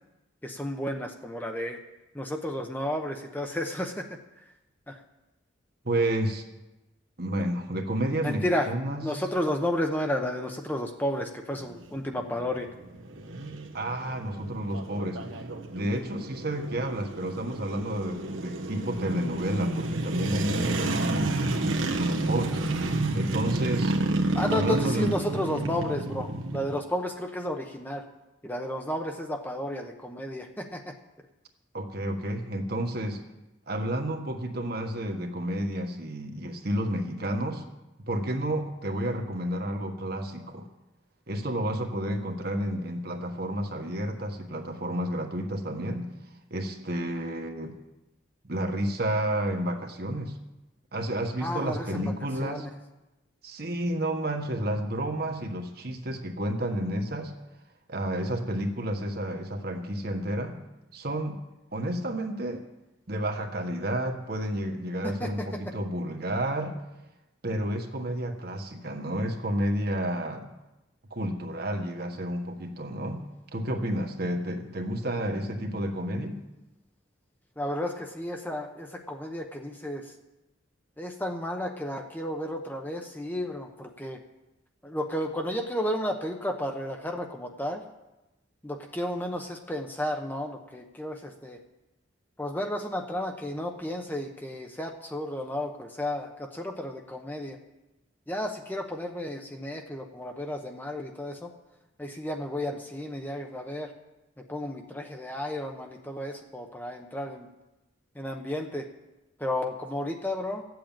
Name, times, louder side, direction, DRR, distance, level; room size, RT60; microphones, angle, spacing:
voice 1, 0.4-1.8 2.1-4.2 4.9-5.0 8.2-12.7 24.3-28.1 28.4-31.0 51.4-52.1 52.4-52.7 65.0-65.8 77.6-80.1 81.0-84.2 84.8-87.8 88.6-91.6 92.4-97.6 98.3-101.5 102.0-103.9 104.4-107.5 108.1-108.9 109.4-110.6, left 1 dB, 10° left, 3 dB, 0.9 m, -32 dB
voice 2, 5.8-6.4 7.2-9.2 13.7-23.9 24.5-25.1 31.7-33.2 33.7-37.7 38.0-40.7 41.3-46.1 46.5-47.7 48.4-50.4 50.9-52.7 53.4-57.3 57.9-60.6 60.9-61.4 61.7-62.6 63.1-66.8 67.4-70.5 71.1-73.2 73.5-76.4, right 1 dB, 50° right, 4 dB, 1.5 m, -31 dB
sound 1, 11.5-26.7, right 2 dB, 80° right, 1.4 m, -30 dB
13.5 x 7.8 x 9.0 m, 0.99 s
head